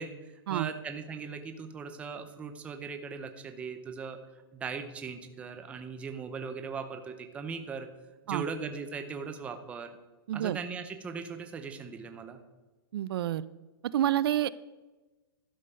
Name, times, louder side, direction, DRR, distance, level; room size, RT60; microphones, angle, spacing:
voice 1, 0.0-4.2 4.5-7.9 8.3-9.9 10.3-12.4, right 5 dB, 10° right, 7 dB, 0.5 m, -39 dB
voice 2, 10.3-10.6 12.9-13.4 13.8-14.5, right 12 dB, 75° right, 17 dB, 0.4 m, -28 dB
12.0 x 5.3 x 5.4 m, 1.2 s
supercardioid pair, 170°, 13 cm